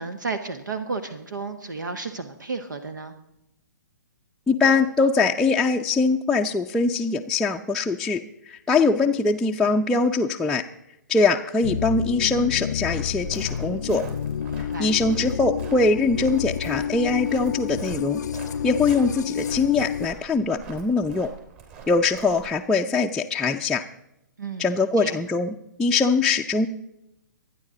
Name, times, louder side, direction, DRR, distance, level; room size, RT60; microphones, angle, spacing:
voice 1, 0.0-3.1 14.5-14.9 24.4-25.2, right 4 dB, 75° right, 10 dB, 1.3 m, -33 dB
voice 2, 4.5-10.6 11.1-14.0 14.6-18.2 18.6-21.3 21.9-23.8 24.6-26.7, left 4 dB, 5° left, -2 dB, 0.6 m, -22 dB
sound 1, 11.6-20.1, left 8 dB, 60° left, 0.6 m, -30 dB
Walk footsteps, 12.8-22.6, right 6 dB, 40° right, 3.9 m, -44 dB
25.5 x 9.7 x 3.9 m, 0.84 s
figure-of-eight pair, 125°, 10 cm